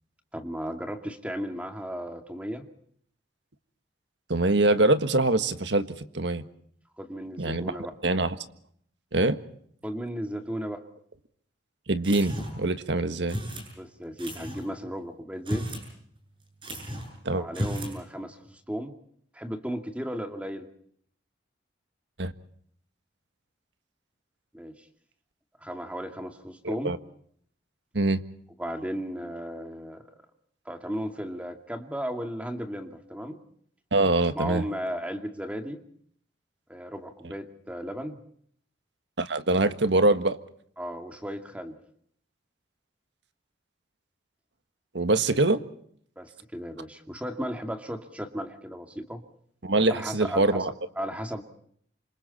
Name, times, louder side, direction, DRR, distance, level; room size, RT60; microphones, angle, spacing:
voice 1, 0.3-2.7 7.0-8.0 9.8-10.9 13.8-15.6 17.3-18.9 19.3-20.7 24.5-24.7 25.6-26.9 28.6-30.0 30.7-33.4 34.3-35.8 36.7-38.2 40.8-41.8 46.2-49.2 49.9-51.4, equal, 5° right, 5 dB, 2.4 m, -35 dB
voice 2, 4.3-6.4 7.4-7.7 8.0-8.3 9.1-9.4 11.9-13.4 17.2-17.5 22.2-22.3 26.6-27.0 27.9-28.2 33.9-34.6 39.2-40.4 44.9-45.6 49.6-50.7, right 2 dB, 75° right, 10 dB, 1.6 m, -24 dB
sound 1, 12.0-12.7 13.3-13.7 14.2-14.6 15.3-15.9 16.2-16.3 16.6-17.1 17.5-18.0, equal, 30° right, 7.8 m, -34 dB
29.0 x 27.0 x 4.3 m, 0.64 s
head